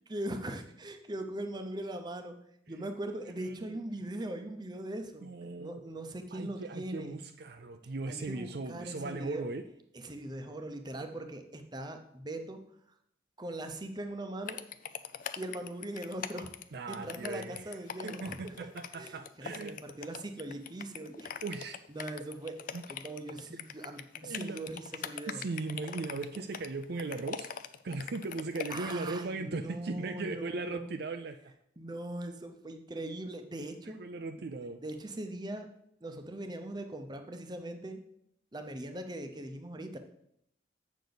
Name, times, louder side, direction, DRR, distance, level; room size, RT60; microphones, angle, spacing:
voice 1, 0.1-2.3 2.7-5.3 5.6-7.2 8.1-9.4 9.9-12.6 13.4-14.6 15.4-16.5 16.9-21.4 21.9-22.6 22.9-25.4 28.7-30.9 31.8-34.0 34.4-35.7 36.0-38.0 38.5-40.0, right 1 dB, 20° right, 6 dB, 0.7 m, -40 dB
voice 2, 3.4-3.7 5.2-5.8 6.3-9.6 16.7-17.7 18.0-19.8 21.4-21.8 22.7-22.8 24.2-24.6 25.3-27.5 27.8-31.4 33.9-34.8, right 3 dB, 55° right, 7 dB, 0.4 m, -38 dB
sound 1, 14.5-29.1, left 8 dB, 45° left, 0.4 m, -42 dB
8.1 x 6.7 x 4.0 m, 0.73 s
head